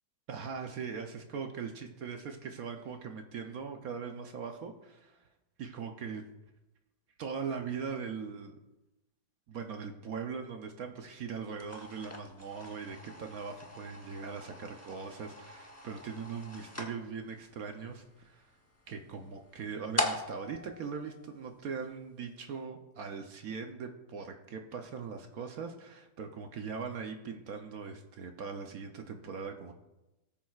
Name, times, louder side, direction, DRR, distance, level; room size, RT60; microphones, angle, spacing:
voice 1, 0.3-5.2 5.6-6.2 7.2-8.6 9.5-18.5 18.9-29.7, right 5 dB, 65° right, 5 dB, 0.9 m, -40 dB
sound 1, 11.5-21.9, left 1 dB, 15° left, 0.5 m, -42 dB
18.0 x 7.3 x 2.4 m, 1.0 s
omnidirectional pair, 2.2 m